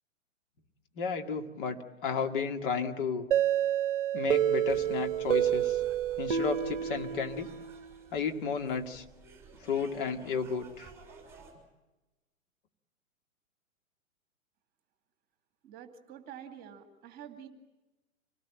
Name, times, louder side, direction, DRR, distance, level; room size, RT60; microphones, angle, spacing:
voice 1, 1.0-3.3 4.1-5.8 6.2-7.5 8.1-9.0 9.6-10.9, left 5 dB, 40° left, 5 dB, 2.3 m, -33 dB
sound 1, 3.3-8.0, right 10 dB, 40° right, 1.2 m, -29 dB
sound 2, 4.7-11.5, right 5 dB, 5° right, 6.3 m, -54 dB
voice 2, 15.6-17.5, right 9 dB, 25° right, 6 dB, 2.4 m, -47 dB
27.0 x 18.5 x 9.1 m, 1.1 s
figure-of-eight pair, 115°, 40 cm